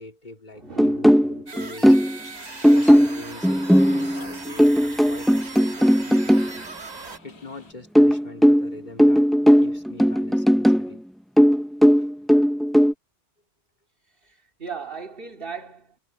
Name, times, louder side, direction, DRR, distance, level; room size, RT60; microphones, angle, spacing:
voice 1, 0.0-2.0 2.7-6.7 7.2-9.3 9.6-11.0 11.9-12.1, left 2 dB, 45° left, 3.0 m, -43 dB
voice 2, 0.5-1.5 14.2-16.0, right 5 dB, 55° right, 2.5 m, -38 dB
sound 1, 0.8-2.2 2.6-6.5 8.0-10.9 11.4-12.9, equal, ahead, 0.3 m, -17 dB
sound 2, 1.5-7.2, right 3 dB, 40° right, 1.6 m, -39 dB
sound 3, 2.2-7.7, left 1 dB, 75° left, 5.7 m, -52 dB
omnidirectional pair, 1.1 m